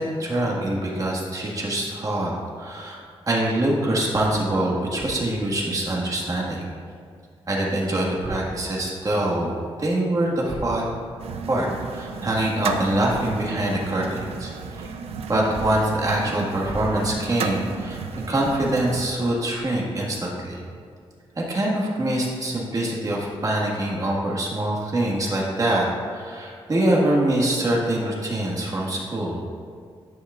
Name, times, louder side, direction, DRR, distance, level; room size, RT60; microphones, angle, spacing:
voice 1, 0.0-2.3 2.6-3.0 3.3-6.6 7.5-11.0 11.5-11.7 11.9-14.5 14.8-14.9 15.3-18.0 18.3-20.6 21.4-25.9 26.1-29.4, right 1 dB, 35° right, -3 dB, 1.7 m, -24 dB
sound 1, 11.2-19.1, right 5 dB, 85° right, 0.5 m, -33 dB
11.5 x 6.4 x 2.5 m, 2.1 s
cardioid pair, 100°, 10 cm